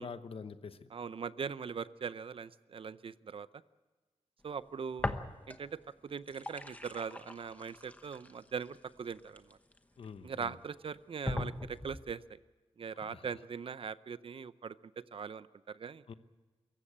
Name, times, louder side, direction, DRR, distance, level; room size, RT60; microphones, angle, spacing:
voice 1, 0.0-0.9 10.0-10.5 12.9-13.3 16.1-16.2, left 5 dB, 65° left, 11 dB, 1.0 m, -46 dB
voice 2, 0.9-3.5 4.4-5.1 5.5-9.6 10.2-12.4 12.8-14.8 15.1-16.0, right 6 dB, 60° right, 16 dB, 0.6 m, -41 dB
sound 1, 5.0-5.8 6.1-10.1 10.6-10.7 11.3-12.1, left 2 dB, 15° left, 1.0 m, -40 dB
24.0 x 15.0 x 8.7 m, 1.3 s
wide cardioid pair, 145°, 10 cm